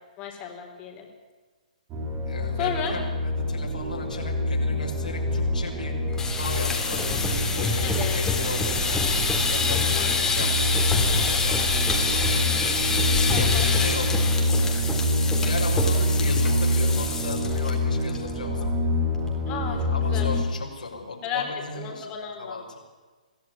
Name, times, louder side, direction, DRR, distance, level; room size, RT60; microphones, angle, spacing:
voice 1, 0.2-1.1 2.6-2.9 7.8-8.3 13.3-13.7 19.5-20.3 21.2-21.4 21.8-22.5, left 8 dB, 25° left, 2 dB, 4.4 m, -33 dB
sound 1, 1.9-20.4, left 1 dB, 25° right, 5.2 m, -26 dB
voice 2, 2.2-5.9 6.2-7.1 7.5-12.5 13.0-14.3 15.4-18.9 19.9-22.1 22.4-22.8, left 3 dB, 75° left, -1 dB, 6.5 m, -36 dB
sound 2, 6.1-17.7 18.0-18.3 18.6-18.7 19.1-19.5, left 4 dB, 10° left, 3.7 m, -26 dB
23.5 x 15.5 x 9.9 m, 1.4 s
figure-of-eight pair, 130°, 4 cm